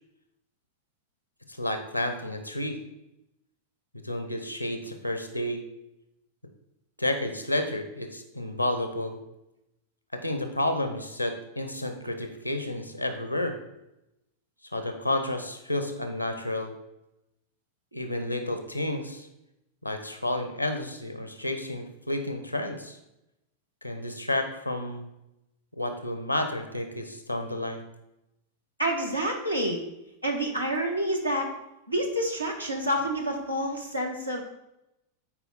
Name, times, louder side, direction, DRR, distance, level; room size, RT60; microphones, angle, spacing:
voice 1, 1.5-2.8 3.9-5.6 7.0-9.2 10.1-13.5 14.7-16.7 17.9-19.3 19.8-23.0 23.8-25.1 25.8-27.8, left 1 dB, 90° left, 7 dB, 0.8 m, -31 dB
voice 2, 28.8-29.8 30.2-31.5 31.9-34.4, right 1 dB, 85° right, 1 dB, 1.3 m, -28 dB
8.9 x 4.6 x 4.0 m, 0.89 s
figure-of-eight pair, 90°, 0 cm